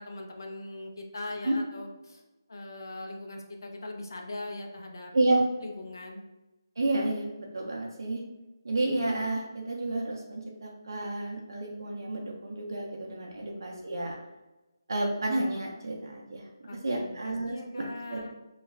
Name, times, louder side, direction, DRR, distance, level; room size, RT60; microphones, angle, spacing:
voice 1, 0.0-2.2 2.5-5.1 5.6-6.2 13.4-13.8 16.6-18.3, left 2 dB, 65° left, 2 dB, 0.4 m, -41 dB
voice 2, 5.1-5.5 6.8-8.2 8.6-14.2 14.9-16.5 16.8-18.2, right 2 dB, 65° right, 0 dB, 0.5 m, -30 dB
2.3 x 2.0 x 3.3 m, 1.1 s
hypercardioid pair, 175°, 2 cm